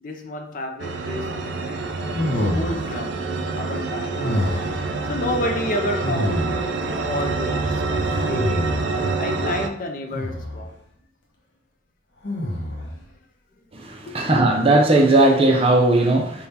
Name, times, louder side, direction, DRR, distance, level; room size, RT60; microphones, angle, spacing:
voice 1, 0.0-4.5 4.8-10.8 12.4-12.5 12.9-13.0 14.1-14.2, left 1 dB, 50° left, 0.5 m, -31 dB
sound 1, 0.8-9.7, right 3 dB, 80° right, 0.4 m, -27 dB
sound 2, 2.1-3.1 4.2-4.9 6.0-6.8 8.0-9.0 10.1-10.7 12.2-13.0, equal, 85° left, 0.8 m, -26 dB
voice 2, 13.7-16.5, right 2 dB, 35° right, 0.6 m, -17 dB
3.5 x 2.3 x 4.1 m
head